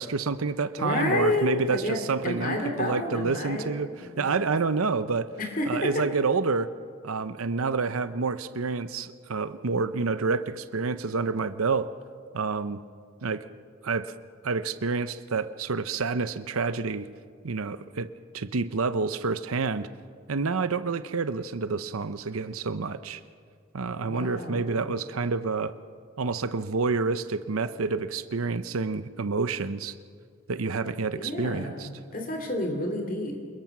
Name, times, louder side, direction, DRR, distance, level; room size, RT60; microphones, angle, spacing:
voice 1, 0.0-5.3 5.7-6.7 7.0-11.9 12.3-12.8 13.2-13.4 13.8-14.1 14.4-17.1 17.4-18.1 18.3-19.9 20.3-23.2 23.7-25.7 26.2-29.9 30.5-31.9, right 4 dB, 85° right, 12 dB, 0.7 m, -28 dB
voice 2, 0.8-2.0 2.2-3.8 4.1-4.5 5.4-6.0 24.0-24.9 31.1-33.4, left 1 dB, 40° left, 3 dB, 2.8 m, -30 dB
28.0 x 21.0 x 6.1 m, 2.1 s
head